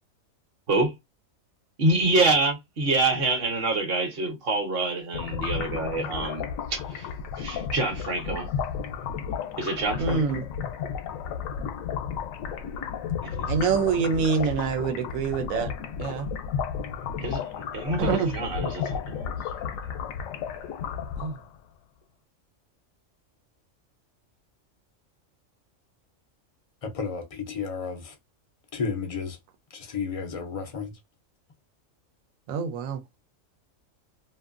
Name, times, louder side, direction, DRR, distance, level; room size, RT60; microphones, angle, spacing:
voice 1, 1.8-7.1 7.4-8.5 9.6-10.4 13.2-13.6 17.2-19.3 19.6-20.1, right 2 dB, 50° right, 0.9 m, -27 dB
sound 1, 5.1-21.6, left 7 dB, 80° left, 1.0 m, -33 dB
voice 2, 10.0-10.4 13.5-15.7 16.0-16.3 18.0-18.3 21.2-21.3 32.5-33.0, right 5 dB, 85° right, 1.0 m, -25 dB
voice 3, 26.8-28.1 28.7-29.4 29.7-31.0, left 5 dB, 65° left, 0.3 m, -32 dB
2.6 x 2.5 x 2.4 m
omnidirectional pair, 1.4 m